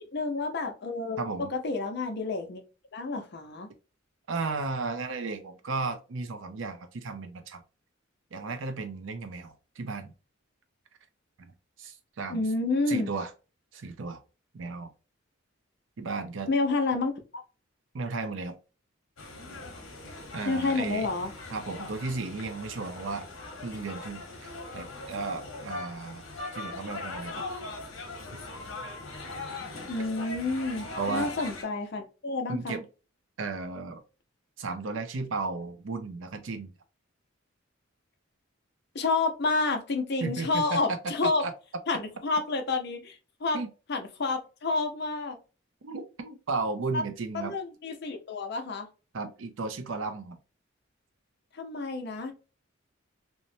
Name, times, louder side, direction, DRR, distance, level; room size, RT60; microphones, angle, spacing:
voice 1, 0.1-2.6 2.9-3.7 12.3-13.1 16.5-17.1 20.5-21.3 29.9-32.8 38.9-41.4 41.9-43.6 43.9-45.4 46.9-47.0 47.3-48.9 51.5-52.3, left 3 dB, 55° left, 5 dB, 0.6 m, -29 dB
voice 2, 1.2-1.5 4.3-7.6 8.3-10.1 11.4-12.5 12.9-13.3 13.7-14.2 14.5-14.9 16.0-16.5 17.9-18.6 20.3-21.1 21.5-23.3 23.6-26.2 26.5-27.5 31.0-31.3 32.5-32.8 33.4-34.0 34.6-36.7 40.2-41.0 41.2-41.5 43.5-43.7 45.8-47.5 49.1-50.4, right 3 dB, 70° right, 8 dB, 0.5 m, -34 dB
sound 1, 19.2-31.6, left 2 dB, 85° left, 0.8 m, -40 dB
2.9 x 2.1 x 2.6 m, 0.32 s
head